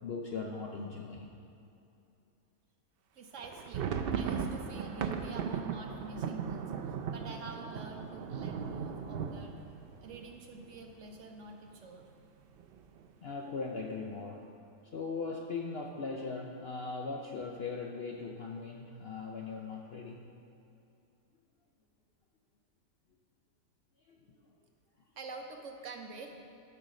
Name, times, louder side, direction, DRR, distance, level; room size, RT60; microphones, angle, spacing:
voice 1, 0.0-1.4 13.2-14.5 14.9-20.3 24.1-24.4, left 4 dB, 60° left, 1 dB, 0.7 m, -39 dB
voice 2, 3.1-6.6 7.1-9.6 10.0-12.0 25.2-26.4, right 3 dB, 60° right, 3 dB, 1.0 m, -47 dB
sound 1, 3.4-11.1 11.4-11.5 11.8-12.0 12.6-13.1, right 6 dB, 90° right, 0.5 m, -37 dB
11.5 x 4.8 x 6.2 m, 2.7 s
omnidirectional pair, 1.6 m